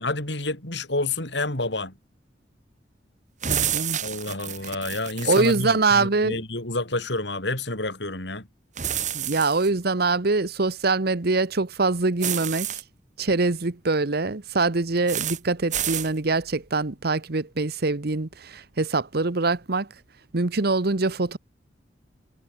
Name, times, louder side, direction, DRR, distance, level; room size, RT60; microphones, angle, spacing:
voice 1, 0.0-1.9 4.0-8.5, left 2 dB, 70° left, 6.1 m, -29 dB
sound 1, 3.4-5.6 8.8-9.7 12.2-12.8 15.1-15.4 15.7-16.1, right 10 dB, 45° right, 2.7 m, -29 dB
voice 2, 3.5-4.0 5.3-6.4 9.1-12.7 13.2-19.9 20.3-21.4, right 3 dB, 60° right, 1.1 m, -24 dB
head